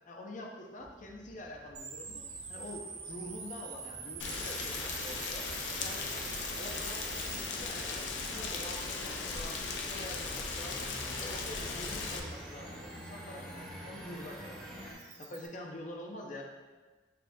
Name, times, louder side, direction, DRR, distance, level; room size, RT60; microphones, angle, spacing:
voice 1, 0.1-2.2 2.5-5.5 5.8-16.4, left 1 dB, 45° left, 1 dB, 0.6 m, -46 dB
sound 1, 0.8-14.9, equal, 5° left, 0.8 m, -49 dB
sound 2, 1.7-15.5, right 6 dB, 40° right, 0.5 m, -48 dB
Rain, 4.2-12.2, left 4 dB, 90° left, 0.5 m, -37 dB
6.6 x 2.3 x 2.6 m, 1.3 s
head